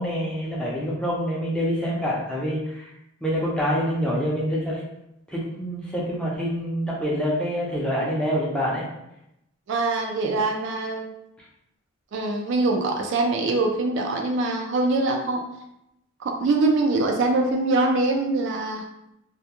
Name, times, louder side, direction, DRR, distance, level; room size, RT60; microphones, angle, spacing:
voice 1, 0.0-2.9 3.2-4.8 5.3-8.9, equal, 5° left, -5 dB, 0.5 m, -26 dB
voice 2, 9.7-11.1 12.1-15.4 16.2-18.8, right 2 dB, 60° right, 2 dB, 0.3 m, -23 dB
2.3 x 2.1 x 2.8 m, 0.83 s
head